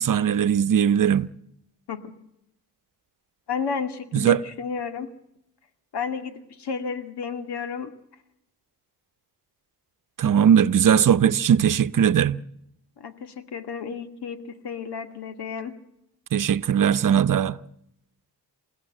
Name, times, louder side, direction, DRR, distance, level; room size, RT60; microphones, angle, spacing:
voice 1, 0.0-1.3 4.1-4.4 10.2-12.4 16.3-17.6, right 8 dB, 55° right, 0.9 m, -19 dB
voice 2, 3.5-5.1 5.9-7.9 13.0-15.7, left 6 dB, 85° left, 2.5 m, -32 dB
28.5 x 15.5 x 7.8 m
wide cardioid pair, 110°, 39 cm